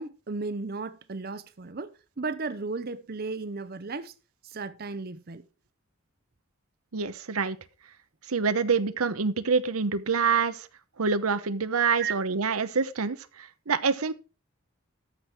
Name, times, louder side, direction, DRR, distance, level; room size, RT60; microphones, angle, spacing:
voice 1, 0.0-4.1 4.4-5.4 12.0-12.1, right 4 dB, 45° right, 0.7 m, -35 dB
voice 2, 6.9-7.6 8.3-10.7 11.0-14.1, right 5 dB, 90° right, 0.8 m, -26 dB
13.5 x 6.1 x 4.8 m
head